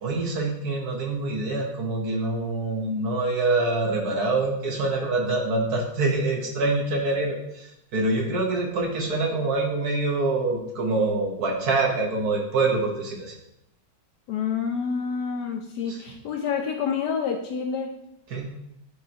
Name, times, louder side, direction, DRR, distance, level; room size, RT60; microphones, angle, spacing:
voice 1, 0.0-13.4 15.9-16.0 18.3-18.5, right 3 dB, 55° right, 0 dB, 1.5 m, -25 dB
voice 2, 14.3-17.9, left 6 dB, 65° left, 3 dB, 1.1 m, -28 dB
11.0 x 4.7 x 2.9 m, 0.81 s
omnidirectional pair, 2.2 m